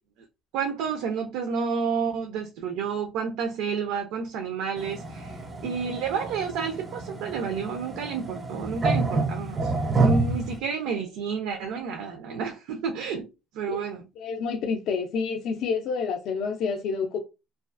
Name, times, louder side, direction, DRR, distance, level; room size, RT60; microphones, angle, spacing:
voice 1, 0.5-13.3 13.5-14.1, right 6 dB, 75° right, 0.4 m, -30 dB
sound 1, 4.8-10.6, right 3 dB, 20° right, 0.4 m, -28 dB
voice 2, 14.2-17.2, left 5 dB, 50° left, 0.4 m, -28 dB
2.3 x 2.3 x 2.4 m
cardioid pair, 165°, 0 cm